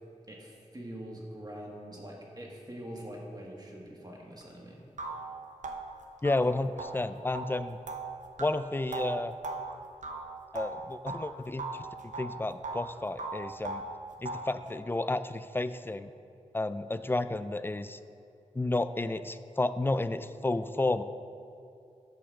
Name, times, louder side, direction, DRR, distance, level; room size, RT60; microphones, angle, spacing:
voice 1, 0.3-4.8, right 1 dB, 30° right, -2 dB, 1.7 m, -44 dB
sound 1, 4.4-4.5 5.0-11.3 11.6-12.9 13.2-14.6, right 3 dB, 75° right, 0.7 m, -39 dB
voice 2, 6.2-7.8 8.4-9.3 10.5-11.9 12.2-13.8 14.2-16.1 16.5-18.0 18.6-21.0, left 2 dB, 15° left, 12 dB, 0.3 m, -31 dB
8.7 x 5.3 x 6.3 m, 2.7 s
wide cardioid pair, 70°, 13 cm